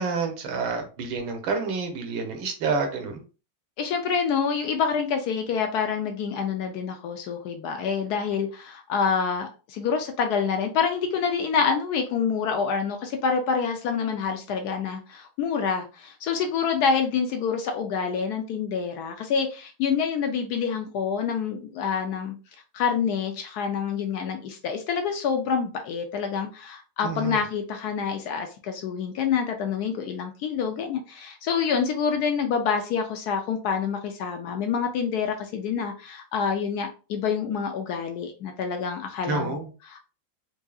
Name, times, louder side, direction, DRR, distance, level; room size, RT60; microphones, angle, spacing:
voice 1, 0.0-3.2 27.0-27.4 39.2-39.7, right 4 dB, 75° right, 5 dB, 1.6 m, -28 dB
voice 2, 3.8-22.3 22.7-39.6 39.9-40.0, left 6 dB, 75° left, 5 dB, 0.9 m, -27 dB
4.7 x 2.7 x 2.3 m, 0.33 s
omnidirectional pair, 2.3 m